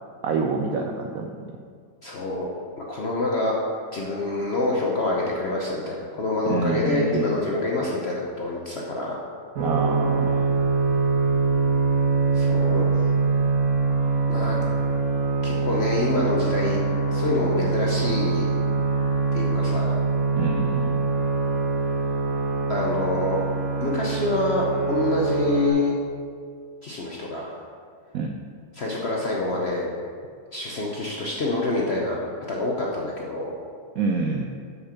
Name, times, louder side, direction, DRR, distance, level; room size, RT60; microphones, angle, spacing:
voice 1, 0.2-1.5 6.5-7.4 9.6-10.5 13.9-14.2 20.4-21.0 28.1-28.4 33.9-34.5, right 4 dB, 75° right, 3 dB, 0.8 m, -27 dB
voice 2, 2.0-2.5 2.9-3.5 3.9-9.2 12.3-12.9 14.3-14.6 15.4-16.8 17.1-18.6 19.3-20.0 22.7-23.4 23.8-25.9 26.8-27.6 28.7-29.8 30.5-32.2 32.5-33.5, left 2 dB, 55° left, -3 dB, 0.7 m, -26 dB
sound 1, 9.6-25.7, right 4 dB, 55° right, 1.3 m, -23 dB
6.3 x 5.7 x 5.7 m, 2.2 s
omnidirectional pair, 2.0 m